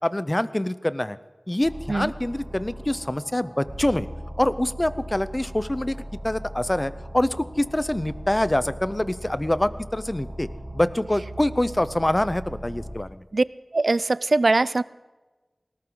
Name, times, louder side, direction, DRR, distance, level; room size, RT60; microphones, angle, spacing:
voice 1, 0.0-1.2 1.5-4.1 4.4-6.0 6.2-10.5 10.7-13.2, left 1 dB, 25° left, 15 dB, 0.7 m, -25 dB
sound 1, 1.6-12.9, right 1 dB, 40° right, 2.6 m, -38 dB
voice 2, 13.7-14.8, right 3 dB, 80° right, 18 dB, 0.4 m, -21 dB
19.5 x 18.0 x 3.9 m, 1.2 s
wide cardioid pair, 45°, 0 cm